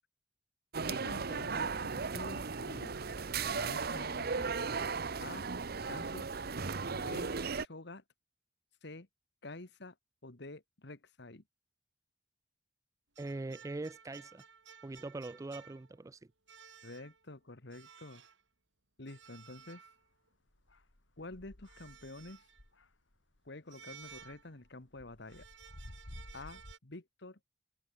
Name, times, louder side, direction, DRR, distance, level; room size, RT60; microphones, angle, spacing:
sound 1, 0.7-7.6, right 5 dB, 55° right, 0.9 m, -36 dB
voice 1, 0.9-3.0 3.5-4.6 5.2-5.5 5.9-6.4 6.9-7.3 7.6-8.0 8.8-9.1 9.4-9.9 10.2-11.4 16.8-18.2 19.0-19.9 21.2-22.5 23.4-25.4 26.3-27.4, left 2 dB, 65° left, 1.7 m, -48 dB
voice 2, 13.2-14.4 14.8-16.2, right 2 dB, 15° right, 0.3 m, -42 dB
sound 2, 13.2-16.1 16.5-17.3 17.7-18.4 19.1-20.3 21.6-22.7 23.7-24.8 25.3-26.8, right 7 dB, 80° right, 5.9 m, -56 dB
sound 3, 19.7-19.8 20.5-23.5 23.9-26.7, left 1 dB, 90° left, 2.5 m, -54 dB
head